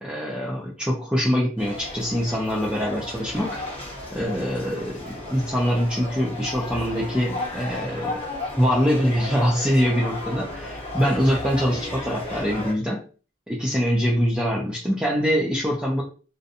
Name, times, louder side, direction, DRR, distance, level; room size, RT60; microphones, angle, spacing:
voice 1, 0.0-3.6 4.1-8.1 8.6-13.0 13.5-16.0, equal, 5° right, -5 dB, 0.4 m, -24 dB
sound 1, 1.6-12.7, left 2 dB, 30° left, 0.8 m, -34 dB
2.6 x 2.2 x 2.6 m, 0.36 s
head